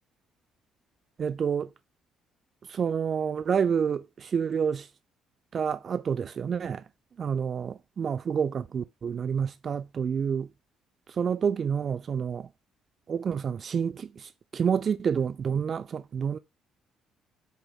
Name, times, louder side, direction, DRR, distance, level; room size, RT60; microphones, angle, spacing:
voice 1, 1.2-1.7 2.7-4.9 5.5-6.8 7.2-10.5 11.1-12.5 13.1-16.4, right 7 dB, 40° right, 0.3 m, -28 dB
5.3 x 2.0 x 3.8 m
figure-of-eight pair, 45°, 0 cm